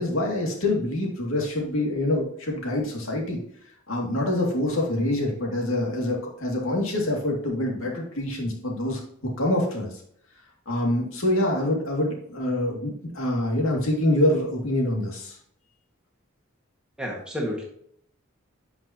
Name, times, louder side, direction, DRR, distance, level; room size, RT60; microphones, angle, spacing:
voice 1, 0.0-3.4 3.9-9.0 9.4-9.9 10.7-15.4, left 1 dB, 80° left, -1 dB, 2.5 m, -25 dB
voice 2, 17.0-17.7, equal, 5° right, -2 dB, 1.8 m, -30 dB
11.5 x 5.9 x 2.9 m, 0.66 s
head